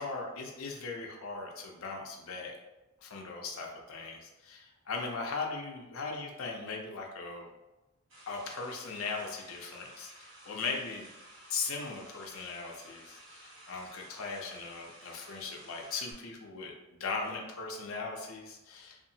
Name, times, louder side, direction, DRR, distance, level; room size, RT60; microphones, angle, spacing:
voice 1, 0.0-2.5 3.0-7.5 8.3-11.1 11.5-16.7 17.0-19.0, left 4 dB, 70° left, 1 dB, 0.5 m, -39 dB
sound 1, 8.1-16.1, right 1 dB, 60° right, 1.3 m, -54 dB
2.7 x 2.4 x 2.7 m, 1.0 s
head